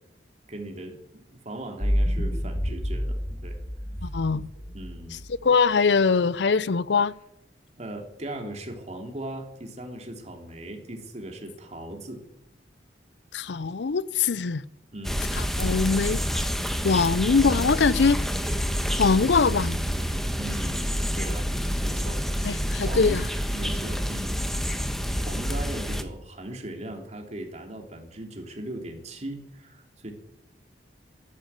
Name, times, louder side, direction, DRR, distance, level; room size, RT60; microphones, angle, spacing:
voice 1, 0.5-3.6 4.7-5.2 7.8-12.2 14.9-15.2 20.4-21.5 21.8-23.2 23.5-24.3 25.1-30.1, right 1 dB, 40° right, 3.1 m, -38 dB
sound 1, 1.8-5.3, equal, 40° left, 3.9 m, -28 dB
voice 2, 4.0-4.5 5.4-7.1 13.3-14.6 15.4-16.2 16.8-18.2 19.0-19.8 22.4-23.3, left 5 dB, 80° left, 0.6 m, -22 dB
sound 2, 15.0-26.0, equal, ahead, 1.2 m, -28 dB
14.0 x 11.0 x 8.9 m
head